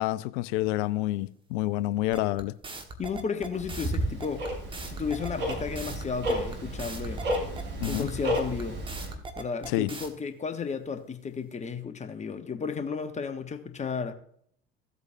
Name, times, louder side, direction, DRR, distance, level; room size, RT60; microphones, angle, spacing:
voice 1, 0.0-2.6 7.8-8.1 9.7-9.9, left 16 dB, 55° left, 0.5 m, -28 dB
sound 1, 2.1-10.1, right 3 dB, 15° right, 1.5 m, -40 dB
voice 2, 3.0-4.5 4.8-7.2 7.9-8.8 9.4-14.1, left 6 dB, 25° left, 1.0 m, -33 dB
Tick-tock, 3.5-9.1, equal, 40° right, 4.9 m, -32 dB
15.5 x 8.1 x 2.7 m
figure-of-eight pair, 65°, 30 cm